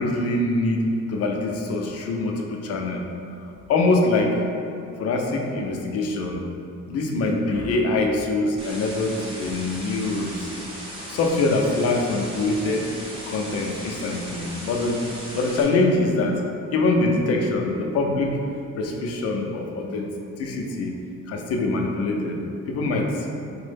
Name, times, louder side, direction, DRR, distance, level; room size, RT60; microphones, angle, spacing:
voice 1, 0.0-3.1 3.7-4.4 5.0-6.4 6.9-10.5 11.1-12.9 13.3-15.0 15.3-16.4 16.7-18.4 18.8-20.1 20.4-21.0 21.3-22.4 22.7-23.3, left 2 dB, 50° left, 1 dB, 0.4 m, -24 dB
sound 1, 8.6-15.6, equal, 15° right, 0.5 m, -37 dB
4.4 x 2.0 x 3.3 m, 2.7 s
cardioid pair, 175°, 31 cm